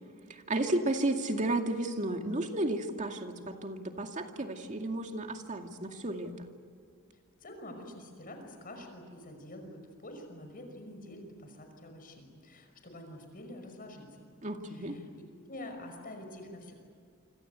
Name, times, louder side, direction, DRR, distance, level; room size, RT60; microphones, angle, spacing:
voice 1, 0.3-6.5 14.4-15.0, right 1 dB, 35° right, 4 dB, 2.3 m, -33 dB
voice 2, 7.4-14.3 14.7-15.1 15.5-16.7, left 1 dB, 40° left, 5 dB, 5.7 m, -47 dB
28.0 x 25.5 x 8.2 m, 2.2 s
head